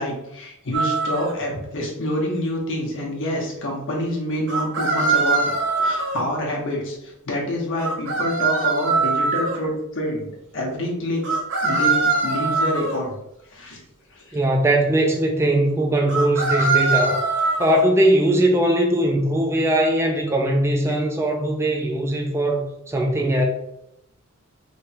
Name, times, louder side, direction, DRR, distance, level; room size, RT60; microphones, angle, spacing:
voice 1, 0.0-5.5 5.8-13.1 13.5-13.8 14.1-14.4, left 1 dB, 60° left, -1 dB, 1.1 m, -27 dB
sound 1, 0.7-1.3 4.5-6.2 7.8-9.6 11.2-13.0 16.1-17.8, right 4 dB, 55° right, 0.8 m, -22 dB
voice 2, 14.3-17.2 17.6-23.4, right 1 dB, 10° right, 1 dB, 0.4 m, -20 dB
3.3 x 2.3 x 4.1 m, 0.80 s
head